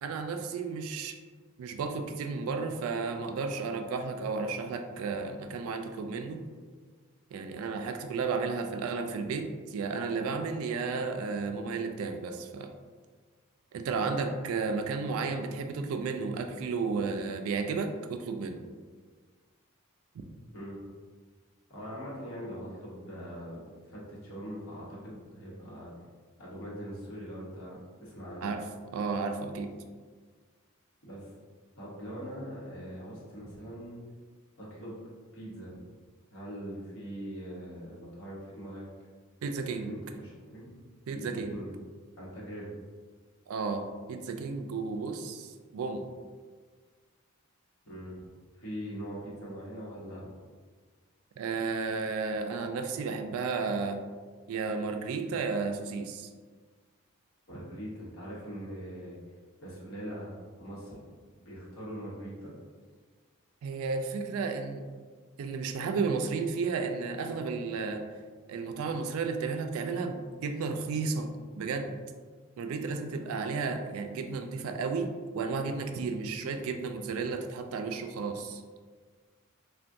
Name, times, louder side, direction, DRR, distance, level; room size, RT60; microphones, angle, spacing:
voice 1, 0.0-1.1 1.6-6.4 7.3-12.7 13.7-18.6 28.4-28.6 28.9-29.7 39.4-39.9 41.1-41.5 43.5-46.1 51.4-54.0 54.5-56.3 63.6-64.9 65.4-68.0 68.5-71.9 72.6-75.1 75.3-78.6, right 4 dB, 70° right, 7 dB, 0.3 m, -33 dB
voice 2, 20.5-20.9 21.7-25.9 26.4-28.5 31.0-31.3 31.8-34.0 34.6-35.0 35.3-35.8 36.3-38.8 39.8-40.7 41.1-41.7 42.2-42.7 47.8-48.3 48.6-50.3 57.5-59.2 59.6-60.3 60.6-61.0 61.4-62.5, equal, 65° left, -6 dB, 0.9 m, -42 dB
3.4 x 2.2 x 2.6 m, 1.5 s
head